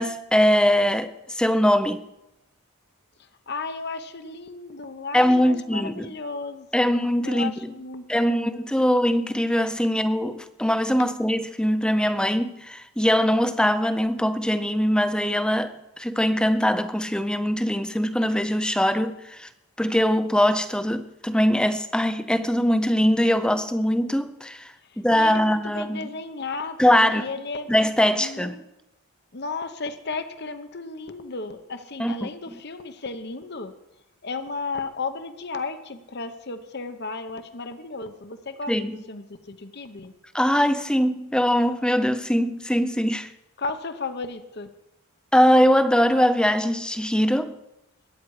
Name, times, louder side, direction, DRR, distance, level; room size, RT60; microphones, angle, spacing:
voice 1, 0.0-2.0 5.1-6.1 6.7-7.5 8.1-19.5 19.8-24.7 25.0-26.1 26.8-27.3 27.7-28.6 32.0-32.3 38.7-39.0 40.3-43.3 45.3-47.6, equal, 5° left, 0.5 m, -22 dB
voice 2, 3.2-8.7 24.8-27.7 28.2-28.6 29.3-33.7 34.2-40.1 43.6-44.7, left 3 dB, 45° left, 0.9 m, -34 dB
21.5 x 9.6 x 4.8 m
head